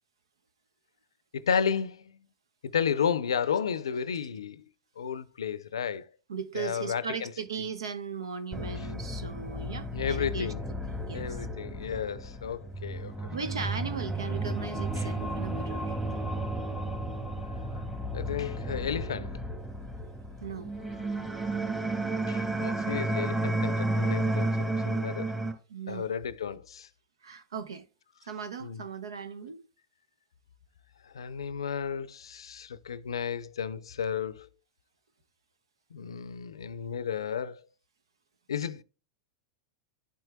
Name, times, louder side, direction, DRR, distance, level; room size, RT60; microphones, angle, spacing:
voice 1, 1.3-2.0 2.6-4.6 5.0-6.1 6.5-7.3 9.9-10.6 11.1-13.1 15.0-15.1 18.1-19.4 22.3-25.3 25.9-26.9 28.6-28.8 31.0-34.5 35.9-37.6 38.5-38.8, left 7 dB, 90° left, 0.5 m, -32 dB
voice 2, 6.3-10.5 10.9-11.4 13.3-16.0 20.4-20.7 25.7-26.1 27.2-27.8 28.2-29.6, right 6 dB, 90° right, 0.9 m, -37 dB
sound 1, 8.5-25.5, right 1 dB, 15° right, 2.0 m, -32 dB
11.5 x 4.6 x 2.2 m
hypercardioid pair, 110°, 3 cm